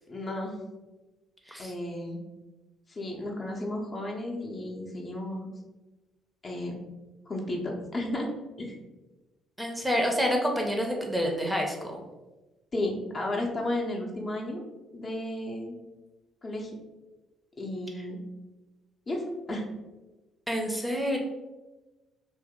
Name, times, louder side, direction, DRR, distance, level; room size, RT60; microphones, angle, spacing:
voice 1, 0.1-0.6 1.6-2.2 2.9-5.5 6.4-6.8 7.3-8.3 8.6-8.7 12.7-14.6 14.9-15.8 16.4-16.7 17.6-18.2 19.1-19.6, left 1 dB, 35° left, 0 dB, 0.7 m, -33 dB
voice 2, 9.6-11.7 20.5-21.2, equal, 10° right, 1 dB, 0.6 m, -28 dB
2.8 x 2.6 x 3.6 m, 1.1 s
figure-of-eight pair, 45°, 0 cm